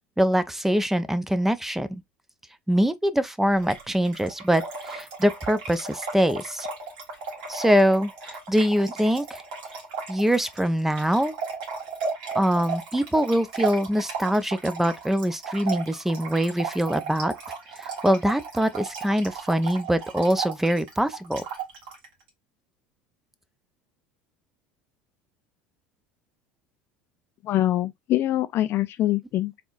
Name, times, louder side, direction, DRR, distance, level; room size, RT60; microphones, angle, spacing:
voice 1, 0.2-2.0 2.7-6.7 7.5-9.4 10.1-11.3 12.3-17.3 17.8-21.4, equal, 5° right, 0.5 m, -23 dB
Trickle dribble / Fill (with liquid), 3.6-22.1, right 5 dB, 70° right, 1.5 m, -35 dB
voice 2, 27.4-29.6, left 14 dB, 50° left, 0.4 m, -24 dB
3.5 x 3.5 x 2.4 m
hypercardioid pair, 70°, 5 cm